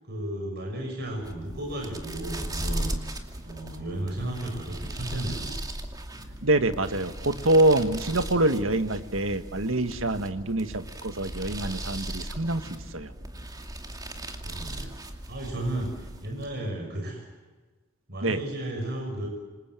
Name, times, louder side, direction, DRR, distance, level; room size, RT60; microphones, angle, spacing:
voice 1, 0.1-3.1 3.4-5.6 14.0-17.2 18.1-19.3, right 1 dB, 55° right, 1 dB, 6.6 m, -34 dB
sound 1, 1.1-16.6, right 1 dB, 20° right, 2.5 m, -37 dB
voice 2, 6.4-13.1 18.2-18.4, right 2 dB, 90° right, 9 dB, 1.8 m, -25 dB
28.0 x 26.5 x 7.7 m, 1.3 s
head